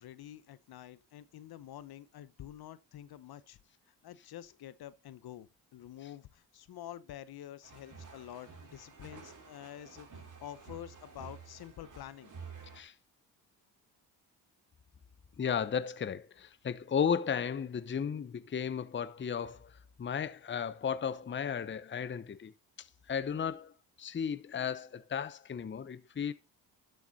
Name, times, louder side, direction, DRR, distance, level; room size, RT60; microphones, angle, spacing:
voice 1, 0.0-3.6 3.9-12.3, left 12 dB, 60° left, 0.9 m, -48 dB
sound 1, 7.6-12.8, right 5 dB, 45° right, 4.5 m, -51 dB
voice 2, 15.4-22.5 22.8-23.7 24.0-26.3, left 7 dB, 30° left, 0.8 m, -34 dB
12.0 x 7.0 x 4.1 m
supercardioid pair, 65°, 41 cm